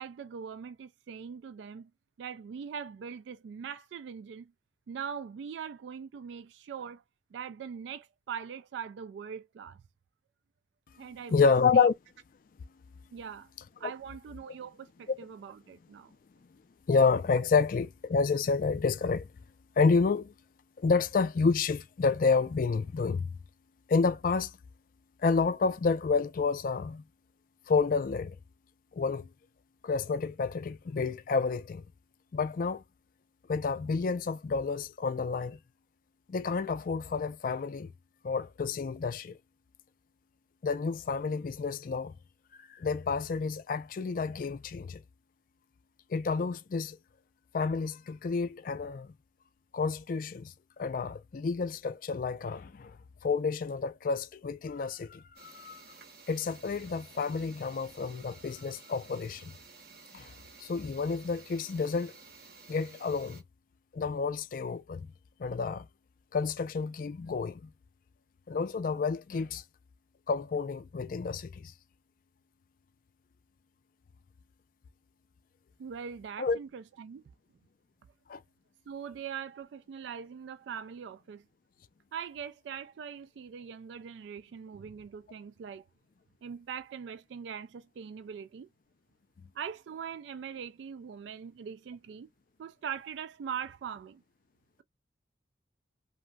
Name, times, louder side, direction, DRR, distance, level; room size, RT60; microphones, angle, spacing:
voice 1, 0.0-1.9 2.2-4.5 4.9-7.0 7.3-9.8 11.0-11.9 13.1-13.5 13.8-16.1 75.8-77.2 78.9-81.4 82.1-85.8 86.4-88.7 89.6-92.3 92.6-94.2, right 7 dB, 75° right, 0.3 m, -41 dB
voice 2, 11.3-11.9 13.8-13.9 16.9-19.3 19.8-20.3 20.8-23.3 23.9-24.5 25.2-27.0 27.7-28.4 28.9-29.3 29.8-31.8 32.3-32.8 33.5-35.6 36.3-37.9 38.2-39.4 40.6-42.1 42.7-45.0 46.1-47.0 47.5-49.1 49.7-53.0 53.2-55.8 56.3-59.5 60.1-60.3 60.6-62.1 62.7-63.4 63.9-65.1 65.4-65.9 66.3-67.7 68.5-69.6 70.3-71.7 76.4-76.6 78.3-78.4, left 4 dB, 45° left, 0.3 m, -29 dB
sound 1, 55.4-63.4, right 4 dB, 55° right, 0.8 m, -53 dB
3.0 x 2.6 x 2.2 m
head